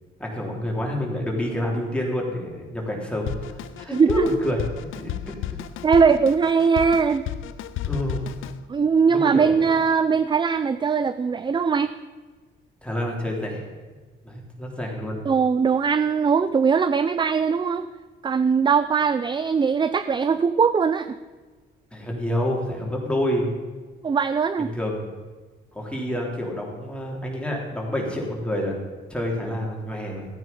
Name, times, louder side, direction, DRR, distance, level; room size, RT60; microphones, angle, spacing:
voice 1, 0.2-4.6 5.0-5.3 7.8-8.2 9.1-9.5 12.8-13.6 14.2-15.2 21.9-23.6 24.6-25.0 25.7-28.8 29.1-30.3, left 1 dB, 5° left, -2 dB, 3.6 m, -28 dB
Drum kit, 3.3-8.6, left 11 dB, 85° left, 0.6 m, -33 dB
voice 2, 3.9-4.2 5.8-7.3 8.7-12.0 15.3-17.8 18.2-21.2 24.0-24.7, right 5 dB, 25° right, 13 dB, 0.4 m, -20 dB
14.0 x 9.2 x 5.4 m, 1.4 s
cardioid pair, 90°, 20 cm